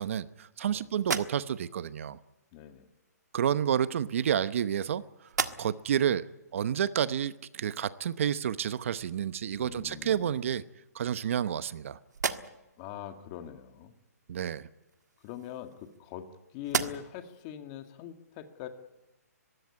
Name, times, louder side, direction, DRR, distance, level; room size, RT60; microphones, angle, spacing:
voice 1, 0.0-2.2 3.3-5.0 5.6-6.2 6.5-10.6 10.9-12.0 14.3-14.7, right 9 dB, 50° right, 16 dB, 0.9 m, -30 dB
sound 1, 1.0-1.8 2.9-3.1 4.0-4.9 5.2-6.0 6.5-6.6 9.2-9.3 9.8-10.5 11.0-11.8 12.1-12.8 14.8-16.3 16.6-17.3, right 5 dB, 85° right, 1.6 m, -36 dB
voice 2, 2.5-2.9 9.6-10.4 12.8-13.9 15.2-16.3 16.5-18.7, left 10 dB, 25° left, 8 dB, 1.9 m, -43 dB
22.0 x 16.0 x 9.7 m, 1.0 s
hypercardioid pair, 155°, 9 cm